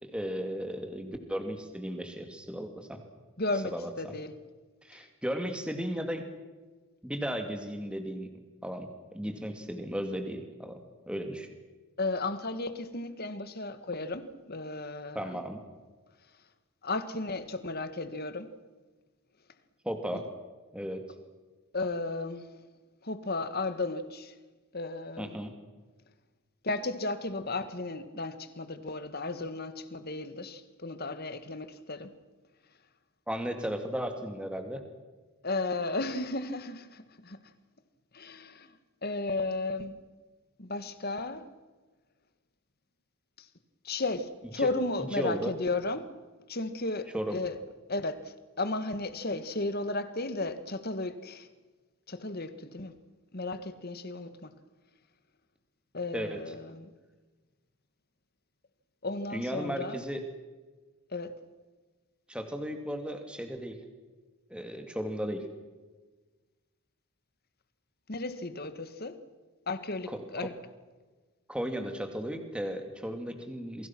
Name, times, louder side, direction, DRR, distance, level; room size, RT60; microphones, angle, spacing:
voice 1, 0.0-3.0 3.7-4.1 4.8-6.2 7.0-8.3 8.6-10.8 11.1-11.5 15.1-15.6 19.8-20.2 20.7-21.0 25.2-25.5 33.3-34.8 44.6-44.7 45.1-45.5 47.1-47.4 56.1-56.4 59.3-60.2 62.3-63.8 64.5-65.5 71.5-73.9, equal, 5° right, 2.4 m, -35 dB
voice 2, 3.4-4.3 4.9-5.1 12.0-15.4 16.8-18.5 20.1-20.2 21.7-22.5 23.0-24.3 24.7-25.4 26.6-32.1 35.4-37.4 38.1-38.7 39.0-40.0 40.6-41.4 43.4-43.5 43.8-46.1 46.5-47.6 47.9-51.5 52.1-52.9 53.3-54.5 55.9-56.9 59.0-60.0 61.1-61.4 68.1-69.2 69.7-70.5, left 2 dB, 45° left, 1.7 m, -34 dB
28.5 x 23.0 x 6.1 m
head